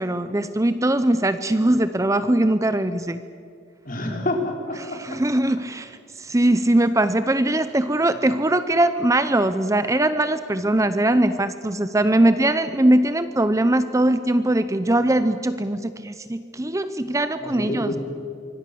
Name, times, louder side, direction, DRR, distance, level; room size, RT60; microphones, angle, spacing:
voice 1, 0.0-3.2 4.8-18.0, right 1 dB, 15° right, 11 dB, 0.7 m, -21 dB
voice 2, 3.8-4.8 17.4-18.0, left 1 dB, 45° left, 2 dB, 4.5 m, -27 dB
26.0 x 25.0 x 7.0 m, 2.4 s
head